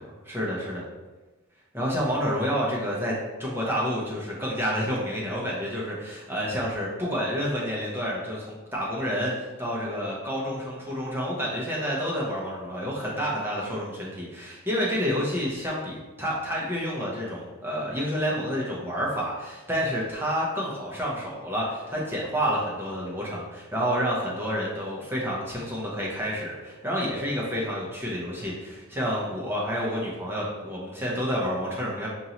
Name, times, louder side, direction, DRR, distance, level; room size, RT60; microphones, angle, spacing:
voice 1, 0.2-0.8 1.7-3.1 3.4-32.1, equal, 10° right, -5 dB, 0.8 m, -29 dB
5.3 x 2.6 x 2.9 m, 1.2 s
head